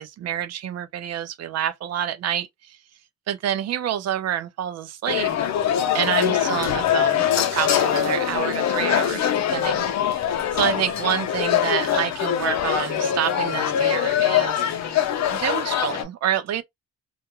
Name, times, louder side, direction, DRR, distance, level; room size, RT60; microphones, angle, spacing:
voice 1, 0.0-2.8 3.3-5.3 5.9-9.8 10.5-15.0 15.3-16.6, right 10 dB, 60° right, 0.5 m, -27 dB
sound 1, 5.1-16.0, left 10 dB, 65° left, 0.6 m, -23 dB
2.4 x 2.1 x 2.8 m
cardioid pair, 90°, 30 cm